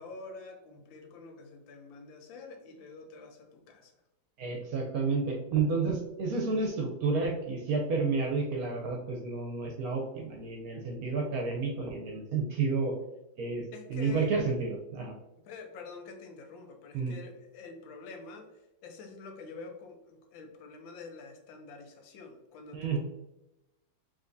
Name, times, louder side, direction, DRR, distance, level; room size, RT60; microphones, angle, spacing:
voice 1, 0.0-4.0 13.7-14.3 15.4-18.5 18.8-23.0, left 4 dB, 90° left, 4 dB, 1.5 m, -47 dB
voice 2, 4.4-12.9 13.4-15.1 16.9-17.1 22.7-23.0, right 4 dB, 65° right, 1 dB, 1.0 m, -31 dB
4.9 x 3.2 x 2.6 m, 0.93 s
omnidirectional pair, 2.0 m